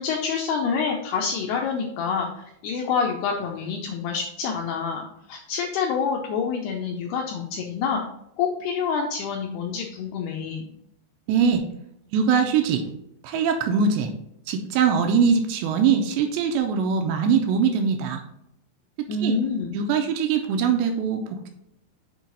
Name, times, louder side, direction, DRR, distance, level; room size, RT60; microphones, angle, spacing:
voice 1, 0.0-8.0 8.4-10.7 19.1-19.8, left 5 dB, 85° left, 1 dB, 2.3 m, -27 dB
voice 2, 11.3-11.6 12.1-12.8 13.2-14.1 14.5-18.2 19.2-19.4 19.7-21.5, right 6 dB, 80° right, 4 dB, 2.8 m, -22 dB
7.4 x 4.7 x 4.0 m, 0.77 s
omnidirectional pair, 5.4 m